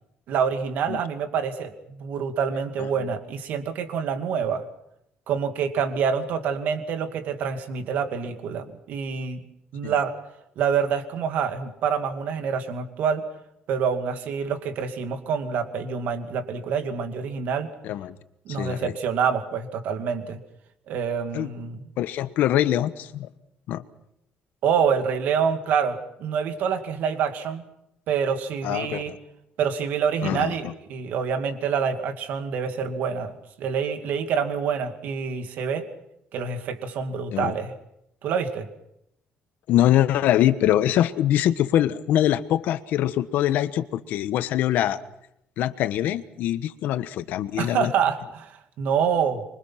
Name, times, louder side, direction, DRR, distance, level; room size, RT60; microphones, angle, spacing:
voice 1, 0.3-4.6 5.3-9.4 9.7-10.1 10.6-13.3 13.7-17.7 18.5-20.4 20.9-21.9 24.6-27.6 28.1-29.1 29.6-33.3 33.6-35.9 36.3-37.7 38.2-38.7 47.6-49.4, right 6 dB, 60° right, 7 dB, 2.5 m, -26 dB
voice 2, 17.8-18.2 18.5-18.9 21.3-21.5 22.0-23.3 23.7-23.8 28.6-29.2 30.2-30.7 37.3-37.5 39.7-45.0 45.6-47.9, left 12 dB, 65° left, 12 dB, 1.2 m, -23 dB
26.0 x 24.0 x 5.9 m, 0.78 s
cardioid pair, 175°, 3 cm